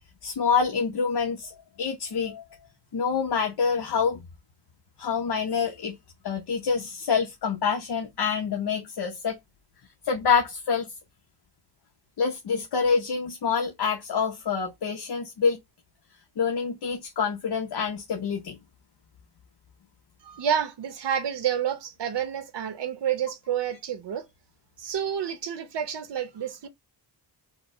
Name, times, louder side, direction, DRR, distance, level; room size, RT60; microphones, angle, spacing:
voice 1, 0.2-1.5 1.8-2.4 2.9-4.2 5.0-6.0 6.2-9.4 10.1-10.9 12.2-15.6 16.4-18.6, left 5 dB, 65° left, 0.8 m, -26 dB
voice 2, 20.2-24.3 24.8-26.7, right 9 dB, 80° right, 0.9 m, -29 dB
5.0 x 2.1 x 4.3 m
wide cardioid pair, 135°, 42 cm